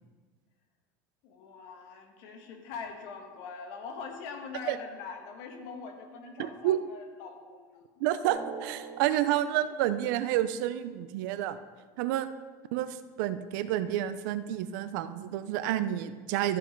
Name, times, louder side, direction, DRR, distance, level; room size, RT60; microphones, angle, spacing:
voice 1, 1.2-7.8, left 5 dB, 70° left, 4 dB, 1.6 m, -43 dB
voice 2, 6.4-6.8 8.0-11.6 12.0-12.3 12.7-16.6, right 12 dB, 80° right, 12 dB, 0.6 m, -29 dB
Drum, 8.3-10.8, right 6 dB, 40° right, 2.2 m, -44 dB
13.0 x 6.0 x 4.6 m, 1.5 s
cardioid pair, 140°, 10 cm